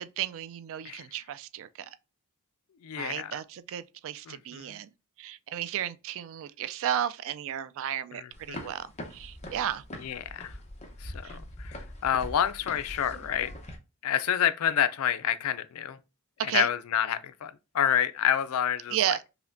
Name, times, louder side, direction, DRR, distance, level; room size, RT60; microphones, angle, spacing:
voice 1, 0.0-1.9 2.9-4.9 5.2-8.9 9.1-9.8 11.2-11.4 16.4-16.7 18.9-19.2, right 10 dB, 65° right, 0.3 m, -33 dB
voice 2, 2.8-3.4 4.3-4.8 8.1-8.7 10.0-10.6 11.0-13.5 14.0-16.0 16.4-19.2, left 9 dB, 70° left, 0.4 m, -29 dB
sound 1, 8.3-13.8, left 1 dB, 30° left, 0.7 m, -43 dB
5.5 x 2.1 x 2.5 m
head